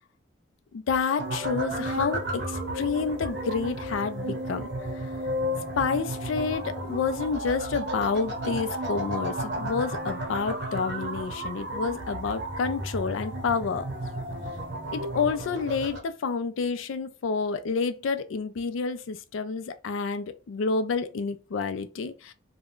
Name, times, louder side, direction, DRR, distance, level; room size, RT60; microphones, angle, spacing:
voice 1, 0.7-5.1 5.8-13.9 14.9-22.3, left 5 dB, 80° left, 0.4 m, -29 dB
sound 1, 1.2-16.0, right 1 dB, 60° right, 0.8 m, -33 dB
2.4 x 2.1 x 3.6 m
head